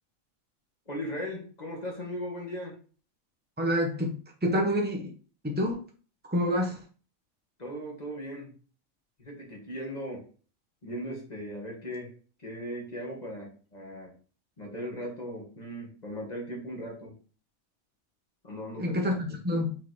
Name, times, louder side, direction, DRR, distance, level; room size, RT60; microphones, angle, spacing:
voice 1, 0.9-2.7 7.6-8.5 9.2-10.2 10.8-12.1 12.4-14.1 14.6-17.1 18.4-19.1, equal, 30° left, -2 dB, 2.1 m, -38 dB
voice 2, 3.6-4.2 4.4-5.1 5.4-5.8 6.3-6.8 18.8-19.8, equal, 5° right, 0 dB, 1.2 m, -27 dB
5.8 x 3.8 x 4.7 m, 0.39 s
omnidirectional pair, 1.4 m